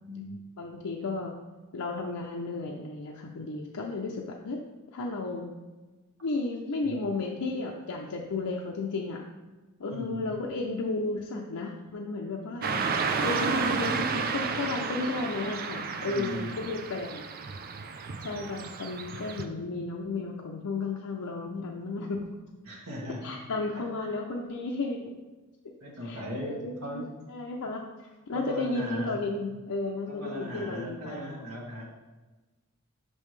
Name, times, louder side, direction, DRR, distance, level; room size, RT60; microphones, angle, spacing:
voice 1, 0.0-0.4 6.8-7.0 9.9-10.2 16.1-16.5 18.2-18.4 22.7-23.3 23.7-23.9 25.8-27.1 28.3-29.2 30.1-31.8, equal, 75° right, -3 dB, 1.5 m, -38 dB
voice 2, 0.6-1.3 1.7-4.6 4.9-5.6 6.2-9.2 9.8-17.2 18.2-22.3 23.2-25.1 26.0-27.0 27.3-31.5, left 3 dB, 85° left, -1 dB, 0.6 m, -33 dB
Car passing by / Traffic noise roadway noise, 12.6-19.4, right 5 dB, 40° right, 0.4 m, -32 dB
5.8 x 5.4 x 3.2 m, 1.2 s
head